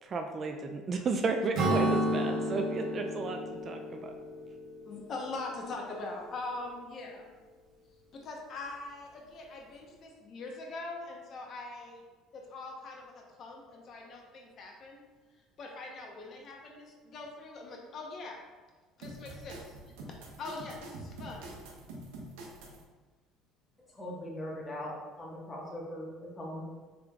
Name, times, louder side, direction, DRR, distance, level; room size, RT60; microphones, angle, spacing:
voice 1, 0.0-4.2, right 4 dB, 35° right, 5 dB, 0.4 m, -33 dB
Acoustic guitar / Strum, 1.5-5.2, right 1 dB, 55° right, 1.0 m, -31 dB
voice 2, 4.8-7.3 8.1-12.0 12.3-15.0 15.6-18.4 19.0-19.6 20.4-21.5, left 3 dB, 45° left, 0 dB, 0.8 m, -42 dB
sound 1, 19.0-22.8, right 1 dB, 90° right, 0.8 m, -46 dB
voice 3, 23.9-26.6, left 1 dB, 20° left, -4 dB, 1.2 m, -40 dB
5.0 x 3.6 x 2.3 m, 1.3 s
cardioid pair, 110°, 0 cm